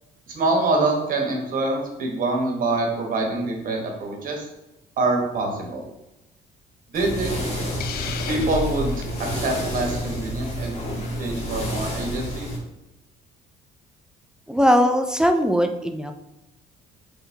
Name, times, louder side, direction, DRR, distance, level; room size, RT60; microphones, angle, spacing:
voice 1, 0.3-4.5 5.0-5.8 6.9-7.5 8.3-9.1 9.3-10.8 11.2-12.5, right 2 dB, 55° right, 1 dB, 1.3 m, -25 dB
sound 1, 6.9-12.6, equal, 40° left, 1.5 m, -29 dB
Hiss, 7.8-9.1, left 8 dB, 65° left, 0.5 m, -35 dB
voice 2, 14.5-16.1, equal, 5° right, 5 dB, 0.4 m, -19 dB
5.4 x 3.5 x 2.8 m, 0.92 s
cardioid pair, 110°, 17 cm